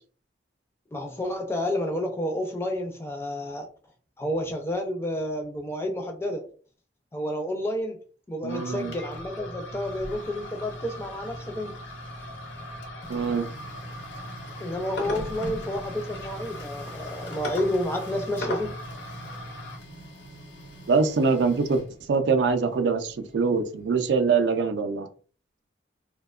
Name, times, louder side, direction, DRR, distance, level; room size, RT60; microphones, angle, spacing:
voice 1, 0.9-3.7 4.2-6.4 7.1-8.0 8.3-11.7 14.6-18.7, left 1 dB, 15° left, 0.4 m, -30 dB
voice 2, 8.4-8.9 13.1-13.5 20.9-21.8 22.1-25.1, right 4 dB, 70° right, 0.4 m, -23 dB
sound 1, 8.5-19.8, left 1 dB, 65° left, 0.6 m, -38 dB
Printer, 8.6-24.4, equal, 80° left, 0.9 m, -45 dB
2.7 x 2.1 x 2.3 m
head